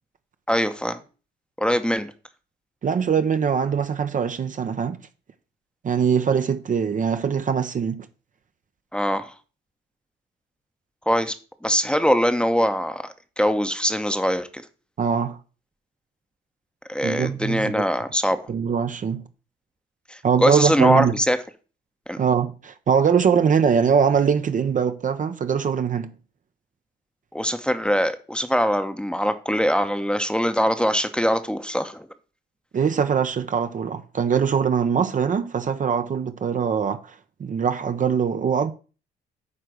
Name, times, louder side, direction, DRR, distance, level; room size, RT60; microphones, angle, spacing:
voice 1, 0.5-1.0 1.6-2.1 8.9-9.3 11.1-11.3 11.6-13.0 13.4-14.5 16.9-18.4 20.1-21.4 22.1-22.2 27.3-32.1, equal, 5° left, 0.8 m, -22 dB
voice 2, 2.8-5.0 5.8-8.1 15.0-15.4 17.0-17.8 18.5-19.2 20.2-21.1 22.2-26.1 32.7-37.1 37.4-38.7, right 7 dB, 40° right, 0.7 m, -22 dB
9.5 x 3.3 x 6.2 m
cardioid pair, 90°, 20 cm